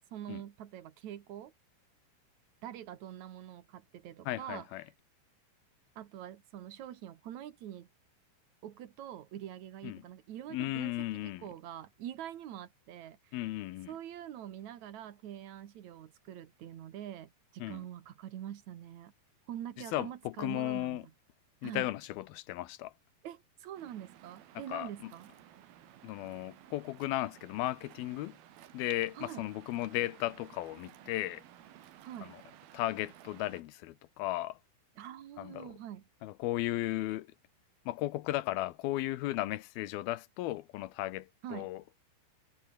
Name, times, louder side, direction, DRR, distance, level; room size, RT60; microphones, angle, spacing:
voice 1, 0.1-1.5 2.6-4.7 6.0-7.9 8.6-13.4 13.9-19.1 19.5-21.1 21.6-21.9 23.2-25.3 29.2-29.5 32.0-32.3 35.0-36.1 41.4-41.7, right 11 dB, 60° right, 2.4 m, -45 dB
voice 2, 4.3-4.8 9.8-10.0 10.5-11.5 13.3-13.9 17.6-17.8 19.9-21.0 21.6-22.9 24.7-25.1 26.0-28.4 28.7-31.4 32.3-32.4 32.7-34.6 35.4-35.8 36.2-37.3 37.9-41.8, left 16 dB, 85° left, 2.7 m, -35 dB
Waves surf, 23.8-33.6, right 12 dB, 75° right, 3.5 m, -56 dB
omnidirectional pair, 4.3 m